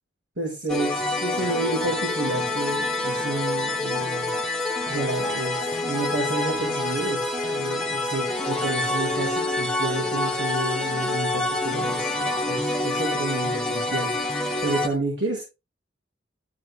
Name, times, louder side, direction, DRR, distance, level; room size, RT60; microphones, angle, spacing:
voice 1, 0.4-4.3 4.9-15.4, right 2 dB, 75° right, -4 dB, 5.3 m, -30 dB
sound 1, 0.7-14.9, left 2 dB, 5° left, 1.8 m, -27 dB
13.5 x 7.1 x 3.6 m, 0.26 s
head